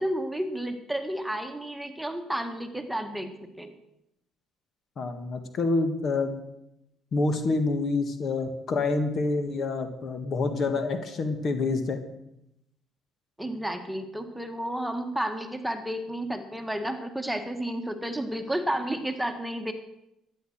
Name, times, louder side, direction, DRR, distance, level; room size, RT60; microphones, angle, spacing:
voice 1, 0.0-3.3 3.6-3.7 13.4-19.7, right 1 dB, 5° right, 6 dB, 1.7 m, -31 dB
voice 2, 5.0-6.4 7.1-12.0, left 3 dB, 50° left, 8 dB, 1.7 m, -27 dB
12.5 x 9.2 x 6.5 m, 0.83 s
hypercardioid pair, 55°, 0 cm